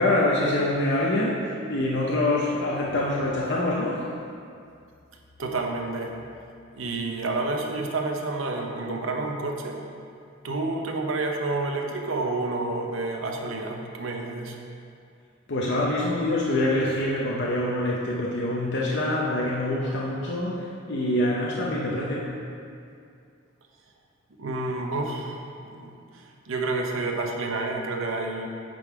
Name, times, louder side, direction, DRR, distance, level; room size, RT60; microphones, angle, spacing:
voice 1, 0.0-4.1 15.5-22.3, left 1 dB, 60° left, -4 dB, 0.8 m, -25 dB
voice 2, 5.4-6.2 6.7-9.8 10.4-14.6 24.4-28.5, right 2 dB, 70° right, 2 dB, 0.8 m, -29 dB
9.0 x 3.8 x 4.7 m, 2.4 s
head